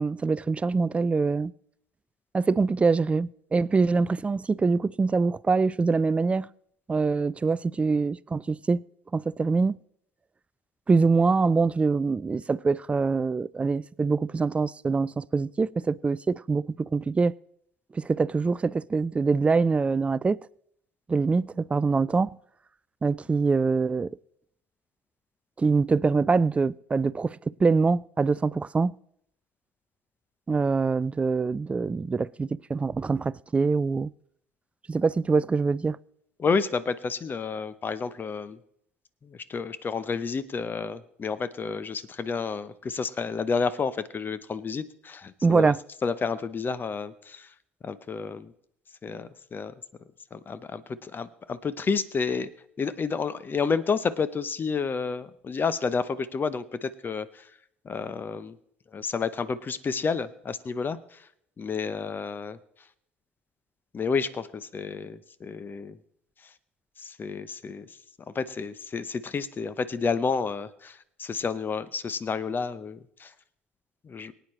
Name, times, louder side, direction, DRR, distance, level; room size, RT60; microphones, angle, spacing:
voice 1, 0.0-1.5 2.3-6.5 6.9-8.8 9.1-9.8 10.9-17.3 17.9-20.4 21.1-22.4 23.0-24.1 25.6-28.9 30.5-34.1 34.9-36.0 45.4-45.8, right 4 dB, 20° right, 0.3 m, -24 dB
voice 2, 36.4-38.6 39.2-45.7 46.0-47.5 47.8-48.5 49.0-49.7 50.3-52.5 52.8-57.5 57.8-58.6 58.9-61.3 61.6-62.6 63.9-66.0 66.4-66.5 67.0-68.0 68.3-73.3 74.0-74.3, left 5 dB, 30° left, 0.8 m, -30 dB
23.0 x 9.0 x 3.2 m
figure-of-eight pair, 60°, 7 cm